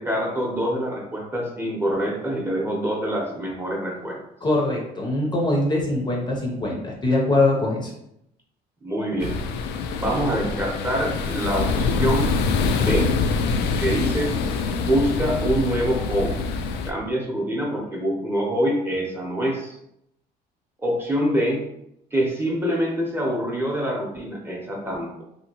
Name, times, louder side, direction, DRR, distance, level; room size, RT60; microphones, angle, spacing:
voice 1, 0.0-4.2 8.8-9.4 10.0-12.4 12.6-13.1 13.8-14.4 14.8-16.4 16.8-19.8 20.8-21.6 22.1-25.2, equal, 15° right, -2 dB, 0.8 m, -25 dB
voice 2, 4.4-7.9, left 2 dB, 25° left, -1 dB, 0.7 m, -22 dB
sound 1, 9.2-16.9, left 4 dB, 80° left, 0.4 m, -25 dB
2.8 x 2.8 x 2.8 m, 0.79 s
cardioid pair, 110°, 17 cm